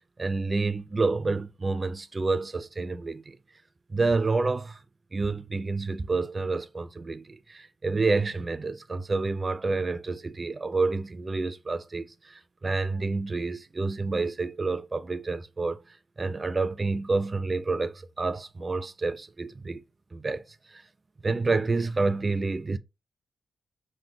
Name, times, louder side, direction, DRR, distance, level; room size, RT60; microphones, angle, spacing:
voice 1, 0.2-3.4 3.9-4.8 5.1-15.8 16.2-19.8 20.1-20.8 21.2-22.8, right 3 dB, 25° right, 0.3 m, -29 dB
3.7 x 2.1 x 4.4 m
wide cardioid pair, 160°, 0 cm